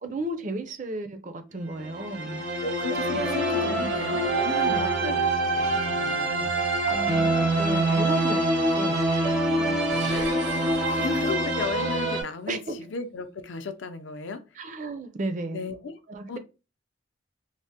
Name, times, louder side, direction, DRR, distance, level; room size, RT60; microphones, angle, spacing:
voice 1, 0.0-2.4 3.1-4.0 4.7-5.2 6.9-7.3 7.6-9.0 9.7-10.2 12.5-12.8 14.6-15.7 16.1-16.4, right 2 dB, 40° right, 0.4 m, -34 dB
sound 1, 1.8-12.2, right 2 dB, 65° right, 0.8 m, -25 dB
voice 2, 2.6-5.2 5.6-6.6 10.1-10.4 10.8-14.4 15.5-15.9 16.3-16.4, left 4 dB, 70° left, 0.4 m, -35 dB
sound 2, 9.8-11.8, right 3 dB, 85° right, 1.7 m, -43 dB
3.3 x 2.0 x 2.7 m
head